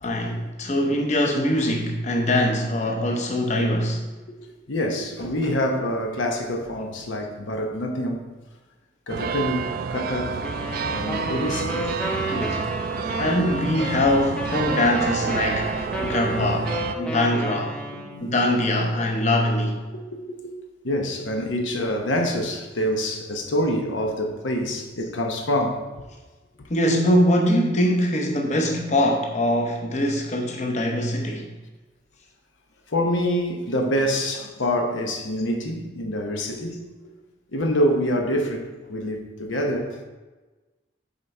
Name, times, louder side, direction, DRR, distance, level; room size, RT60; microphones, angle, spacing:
voice 1, 0.0-4.0 12.3-12.6 13.2-17.8 18.2-19.8 26.7-31.5, left 1 dB, 40° left, 0.7 m, -23 dB
voice 2, 4.7-8.2 9.1-10.4 10.9-11.8 13.0-13.1 17.9-18.3 19.9-20.5 20.8-25.8 26.6-26.7 30.9-31.0 32.9-36.8 37.5-40.0, equal, 90° left, 1.0 m, -26 dB
sound 1, 9.1-16.9, right 6 dB, 50° right, 0.3 m, -29 dB
sound 2, 10.4-18.4, equal, 5° left, 0.6 m, -32 dB
7.4 x 4.1 x 4.7 m
head